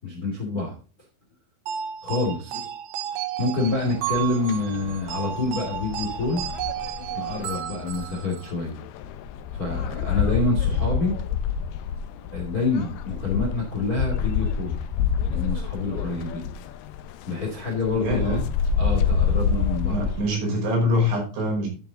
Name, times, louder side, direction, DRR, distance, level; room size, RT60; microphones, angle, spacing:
voice 1, 0.0-0.8 2.0-2.6 3.1-6.4 7.1-8.8 9.5-11.2 12.3-14.8 15.2-16.5 17.3-18.4 18.8-20.4, left 3 dB, 30° left, 0 dB, 2.0 m, -27 dB
sound 1, 1.7-8.5, right 10 dB, 90° right, 3.5 m, -33 dB
sound 2, 3.6-20.2, left 6 dB, 80° left, 2.2 m, -28 dB
voice 2, 18.0-18.4 19.9-21.7, left 1 dB, 70° right, -1 dB, 7.2 m, -24 dB
12.5 x 7.0 x 3.7 m, 0.36 s
omnidirectional pair, 5.5 m